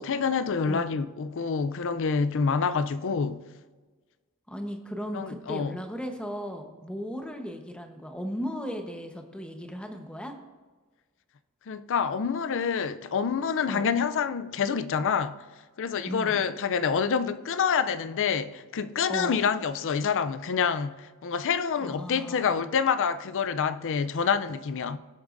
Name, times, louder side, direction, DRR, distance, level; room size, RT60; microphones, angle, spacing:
voice 1, 0.0-3.4 5.1-5.8 11.7-15.4 15.8-25.0, left 6 dB, 60° left, 0.5 m, -27 dB
voice 2, 4.5-10.3 13.7-13.9 16.1-16.4 19.1-19.4 21.8-22.6, equal, 5° left, 1.0 m, -36 dB
17.5 x 8.1 x 2.6 m
head